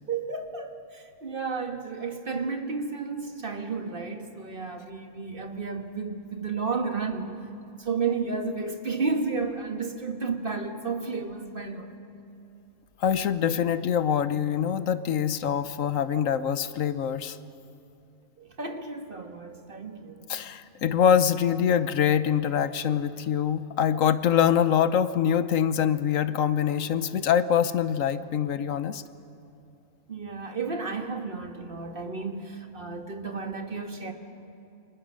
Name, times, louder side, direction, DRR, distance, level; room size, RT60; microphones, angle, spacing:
voice 1, 0.1-7.4 7.7-11.9 18.4-20.3 30.1-34.1, right 4 dB, 45° right, 5 dB, 1.7 m, -32 dB
voice 2, 13.0-17.4 20.3-29.0, left 8 dB, 80° left, 13 dB, 1.2 m, -24 dB
29.0 x 25.5 x 6.4 m, 2.7 s
omnidirectional pair, 1.3 m